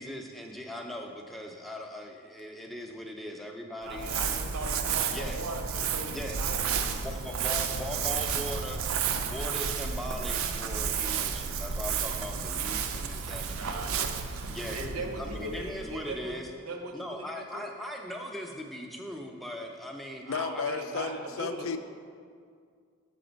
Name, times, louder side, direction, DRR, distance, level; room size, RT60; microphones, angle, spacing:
voice 1, 0.0-4.2 5.1-5.4 6.0-6.4 7.0-14.1 14.5-16.5 16.9-20.2 20.5-20.7, equal, ahead, 1 dB, 0.4 m, -39 dB
voice 2, 3.8-6.9 13.4-14.1 14.6-17.7 20.3-21.8, right 2 dB, 90° right, 4 dB, 0.8 m, -39 dB
Crumpling crinkling, 3.9-16.3, right 6 dB, 75° right, 0.4 m, -32 dB
voice 3, 20.3-21.8, left 5 dB, 70° left, 9 dB, 0.4 m, -33 dB
6.8 x 4.3 x 5.1 m, 2.1 s
head